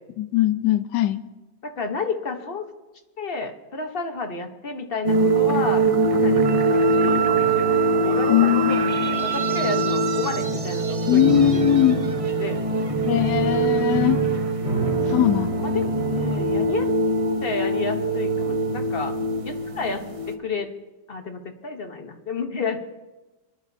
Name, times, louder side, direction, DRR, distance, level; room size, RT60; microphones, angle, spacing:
voice 1, 0.2-1.2 8.3-9.0 11.1-12.0 13.0-14.2 15.1-15.5, left 11 dB, 75° left, 10 dB, 1.4 m, -20 dB
voice 2, 1.6-2.6 3.2-5.9 6.1-8.4 8.7-11.2 11.5-12.6 15.1-15.4 15.6-16.9 17.4-19.1 19.4-20.7 21.1-22.9, left 4 dB, 40° left, 5 dB, 1.0 m, -31 dB
sound 1, 5.0-20.3, right 2 dB, 50° right, 0.4 m, -23 dB
Wind instrument woodwind instrument, 6.4-10.5, right 12 dB, 80° right, 1.4 m, -28 dB
Piano, 11.2-17.1, right 3 dB, 5° right, 4.9 m, -31 dB
25.0 x 11.5 x 2.7 m, 1.1 s
omnidirectional pair, 2.0 m